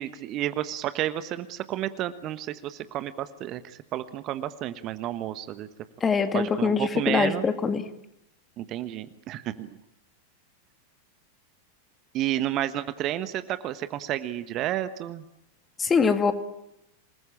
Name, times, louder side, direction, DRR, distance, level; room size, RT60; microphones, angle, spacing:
voice 1, 0.0-5.7 6.3-7.4 8.6-9.8 12.1-15.2, right 13 dB, 35° right, 12 dB, 1.3 m, -31 dB
voice 2, 6.0-7.8 15.8-16.3, left 5 dB, 20° left, 9 dB, 2.2 m, -23 dB
27.5 x 20.0 x 8.9 m, 0.84 s
figure-of-eight pair, 90°, 0 cm